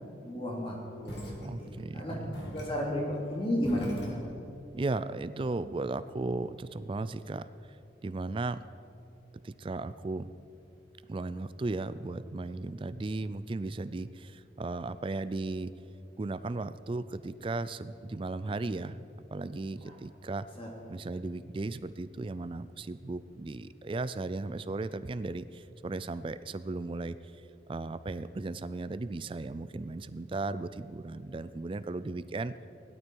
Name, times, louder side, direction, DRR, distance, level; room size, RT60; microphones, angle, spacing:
voice 1, 0.2-2.2 2.5-4.2 19.8-19.9 20.6-20.7, equal, 30° left, -2 dB, 2.6 m, -33 dB
sound 1, 1.1-2.0 2.3-4.7, equal, 70° left, 2.4 m, -43 dB
voice 2, 1.4-2.2 4.7-7.5 8.0-8.6 9.4-10.3 11.1-15.7 16.2-19.0 19.3-20.5 20.9-27.2 27.7-32.6, right 2 dB, 30° right, 14 dB, 0.3 m, -36 dB
17.0 x 12.0 x 4.6 m, 2.7 s
head